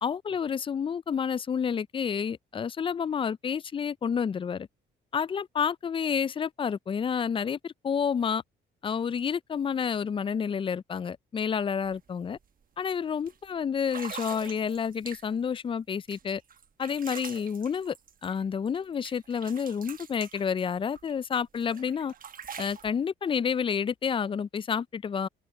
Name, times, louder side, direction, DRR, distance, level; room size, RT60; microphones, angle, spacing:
voice 1, 0.0-4.7 5.1-8.4 8.8-12.4 12.8-16.4 16.8-18.0 18.2-22.1 22.6-25.3, left 7 dB, 25° left, 0.3 m, -29 dB
sound 1, 11.8-12.0 12.3-12.6 13.3-13.4 13.8-15.5 16.1-18.8 19.0-21.1 21.5-22.9, right 7 dB, 45° right, 1.0 m, -44 dB
cardioid pair, 90°, 20 cm